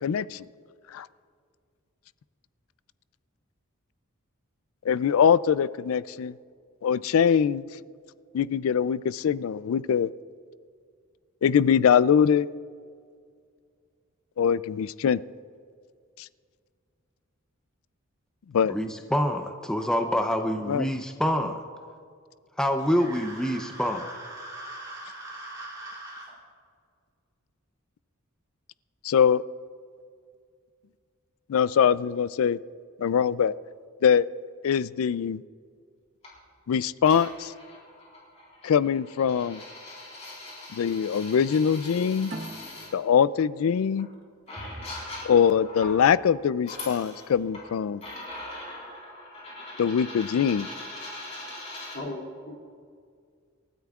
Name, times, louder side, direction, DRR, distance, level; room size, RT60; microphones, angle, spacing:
voice 1, 0.0-0.4 0.9-1.1 4.8-6.3 6.8-7.6 8.3-10.1 11.4-12.5 14.4-15.2 16.2-16.3 18.5-18.7 20.7-20.9 29.0-29.4 31.5-32.6 33.0-33.5 34.0-34.3 34.6-35.4 36.7-37.5 38.6-39.6 40.7-42.3 42.9-44.1 45.2-48.0 49.8-50.7, left 7 dB, 75° left, 18 dB, 0.3 m, -23 dB
voice 2, 18.7-21.6 22.6-24.1, equal, 5° left, 4 dB, 0.6 m, -26 dB
sound 1, 22.8-26.3, right 2 dB, 15° right, 3.0 m, -41 dB
sound 2, 36.2-36.4 37.0-42.9 44.0-44.1 44.5-46.0 46.5-47.7 48.0-52.0, left 2 dB, 30° left, 4.1 m, -41 dB
sound 3, 42.3-45.5, right 1 dB, 50° right, 1.4 m, -43 dB
voice 3, 51.9-52.5, left 1 dB, 45° left, -2 dB, 2.5 m, -36 dB
28.0 x 13.0 x 2.4 m, 2.1 s
head